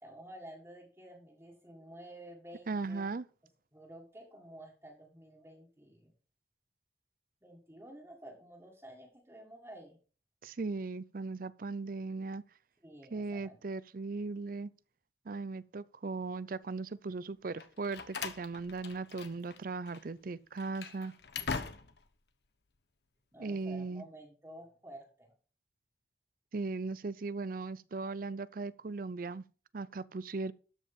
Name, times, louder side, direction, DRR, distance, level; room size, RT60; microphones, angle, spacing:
voice 1, 0.0-3.1 3.7-6.1 7.4-10.0 12.8-13.6 23.3-25.3, right 1 dB, 15° right, 1.8 m, -51 dB
voice 2, 2.7-3.3 10.4-12.4 13.1-14.7 15.3-21.1 23.4-24.0 26.5-29.4 29.7-30.5, right 3 dB, 50° right, 0.5 m, -38 dB
Slam, 17.6-19.6 19.9-20.0 20.5-22.1, left 5 dB, 70° left, 1.1 m, -41 dB
13.0 x 5.3 x 5.3 m
head